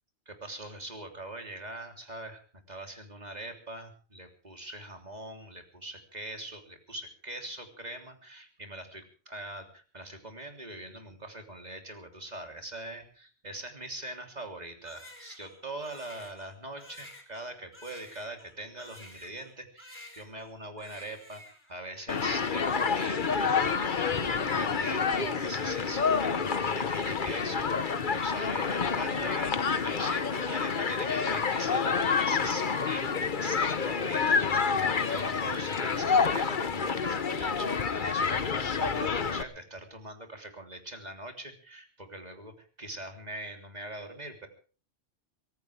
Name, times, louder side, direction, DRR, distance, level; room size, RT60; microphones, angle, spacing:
voice 1, 0.3-2.4 2.7-33.0 33.3-34.7 35.0-44.5, right 1 dB, 35° right, 4 dB, 3.5 m, -42 dB
Crying sobbing, 14.8-19.5 19.8-20.5 20.8-21.7, left 1 dB, 10° left, 4.3 m, -51 dB
Human group actions, 22.1-39.4, left 5 dB, 45° left, 1.2 m, -28 dB
24.5 x 17.5 x 3.4 m, 0.38 s
omnidirectional pair, 1.2 m